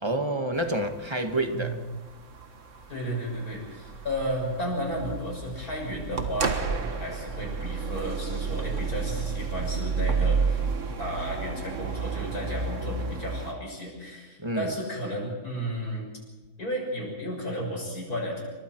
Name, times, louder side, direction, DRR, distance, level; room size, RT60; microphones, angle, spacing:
voice 1, 0.0-1.8 14.4-14.7, right 1 dB, 20° right, 6 dB, 1.5 m, -28 dB
sound 1, 0.6-13.5, right 5 dB, 55° right, 1.8 m, -31 dB
voice 2, 2.9-10.6 11.0-16.1 16.6-18.4, equal, 90° left, 0 dB, 7.5 m, -33 dB
28.5 x 24.5 x 4.6 m, 1.3 s
omnidirectional pair, 1.6 m